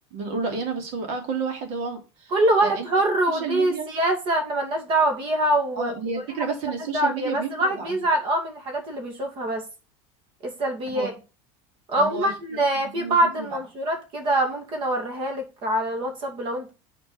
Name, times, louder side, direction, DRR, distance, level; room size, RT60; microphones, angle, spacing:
voice 1, 0.1-2.3 2.6-2.9 3.3-3.9 5.8-8.0 10.9-11.1 12.0-12.3 12.8-13.6, right 5 dB, 55° right, 3 dB, 3.4 m, -31 dB
voice 2, 2.3-5.9 6.9-9.6 10.4-11.1 11.9-16.7, right 1 dB, 40° right, 3 dB, 2.4 m, -24 dB
6.6 x 4.6 x 6.4 m, 0.31 s
cardioid pair, 155°, 13 cm